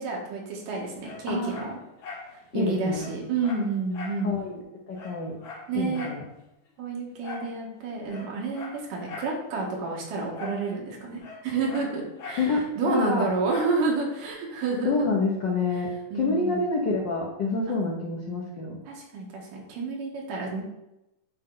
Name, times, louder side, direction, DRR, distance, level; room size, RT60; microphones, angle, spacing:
voice 1, 0.0-1.8 2.3-4.4 5.7-6.1 6.8-14.9 16.1-16.6 18.9-20.6, right 3 dB, 80° right, -1 dB, 3.1 m, -30 dB
Dog, 1.0-2.3 2.6-2.7 3.0-4.2 4.6-4.7 4.9-6.2 7.2-7.5 8.0-9.4 10.3-10.7 10.9-12.5 13.5-13.8 14.3-14.4, left 4 dB, 55° left, 1.4 m, -41 dB
voice 2, 2.5-3.1 4.2-4.6 4.9-5.4 5.7-6.2 12.4-13.3 14.8-18.8, left 3 dB, 80° left, -3 dB, 1.0 m, -27 dB
9.3 x 4.3 x 3.9 m, 0.89 s
omnidirectional pair, 3.7 m